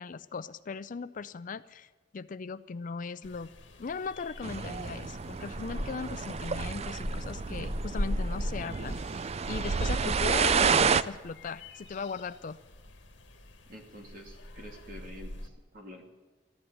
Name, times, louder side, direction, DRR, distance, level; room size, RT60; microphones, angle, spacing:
voice 1, 0.0-3.5 3.8-9.0 9.5-12.6, left 5 dB, 45° left, 14 dB, 0.4 m, -38 dB
sound 1, 3.2-15.5, left 1 dB, 75° left, 1.7 m, -41 dB
sound 2, 4.4-11.0, right 5 dB, 35° right, 0.4 m, -30 dB
voice 2, 13.7-16.1, equal, 50° right, 2 dB, 2.7 m, -48 dB
14.5 x 10.5 x 9.2 m, 1.3 s
head